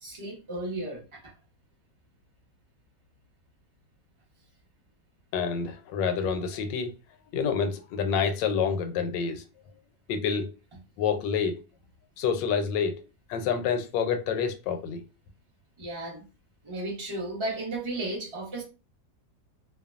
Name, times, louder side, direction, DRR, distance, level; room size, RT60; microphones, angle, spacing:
voice 1, 0.0-1.3 15.8-16.2 16.6-18.6, right 2 dB, 35° right, 0.4 m, -34 dB
voice 2, 5.3-6.9 7.3-9.4 10.1-10.5 11.0-11.6 12.2-13.0 13.3-15.0, left 6 dB, 85° left, 1.2 m, -28 dB
2.8 x 2.2 x 2.4 m
omnidirectional pair, 1.9 m